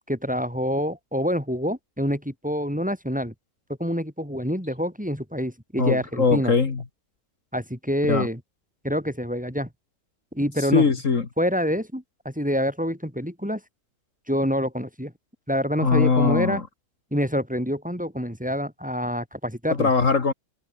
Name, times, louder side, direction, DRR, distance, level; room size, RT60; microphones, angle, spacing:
voice 1, 0.1-3.3 3.8-6.5 7.5-8.4 8.8-9.7 10.3-10.8 11.4-13.6 14.3-15.1 15.5-16.6 17.1-19.9, equal, 5° right, 4.6 m, -26 dB
voice 2, 5.8-6.8 8.1-8.3 10.7-11.3 15.8-16.6 19.8-20.3, left 4 dB, 55° left, 2.3 m, -21 dB
open air
omnidirectional pair, 1.6 m